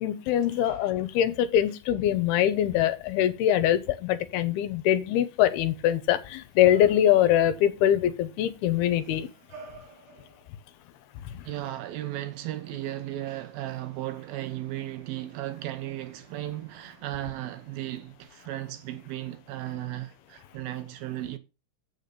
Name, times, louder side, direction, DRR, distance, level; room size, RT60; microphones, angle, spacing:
voice 1, 0.0-9.3 11.3-11.4, left 11 dB, 80° left, 2.7 m, -23 dB
sound 1, 6.7-7.5 9.0-10.9 12.3-12.4, right 3 dB, 35° right, 2.8 m, -50 dB
voice 2, 11.2-21.4, right 14 dB, 75° right, 2.4 m, -35 dB
8.5 x 6.6 x 5.1 m
omnidirectional pair, 4.7 m